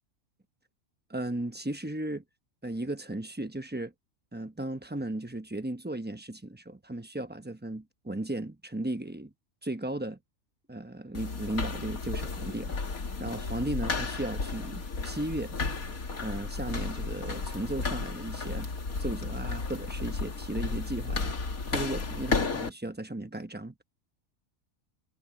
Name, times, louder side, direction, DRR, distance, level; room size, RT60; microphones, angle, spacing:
voice 1, 1.1-2.2 2.6-3.9 4.3-9.3 9.6-10.2 10.7-12.7 13.2-15.6 16.2-18.7 19.0-21.3 21.7-23.7, right 1 dB, 10° right, 0.9 m, -35 dB
sound 1, 11.1-22.7, left 4 dB, 85° left, 2.6 m, -33 dB
omnidirectional pair, 1.4 m